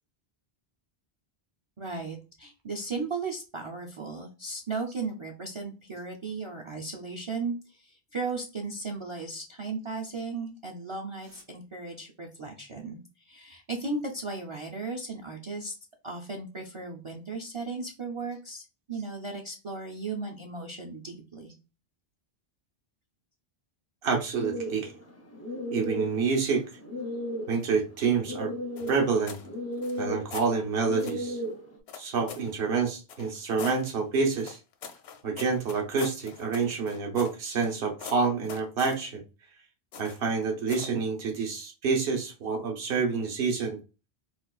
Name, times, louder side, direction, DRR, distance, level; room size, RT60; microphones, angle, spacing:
voice 1, 1.8-13.0 13.2-15.7 16.0-21.5, right 3 dB, 40° right, 1 dB, 0.5 m, -36 dB
voice 2, 24.0-24.9 25.7-26.6 27.5-28.5 28.9-29.4 30.0-31.4 31.9-34.6 35.2-39.2 40.0-43.8, right 5 dB, 65° right, 2 dB, 1.0 m, -28 dB
sound 1, 24.4-31.8, equal, 20° left, 0.4 m, -36 dB
sound 2, 28.8-29.5 29.8-30.5 31.0-31.2 31.9-32.5 33.1-33.8 34.4-37.7 38.0-39.0 39.9-40.3 40.7-41.0, left 6 dB, 85° left, 0.9 m, -43 dB
4.1 x 2.4 x 2.3 m, 0.30 s
omnidirectional pair, 1.1 m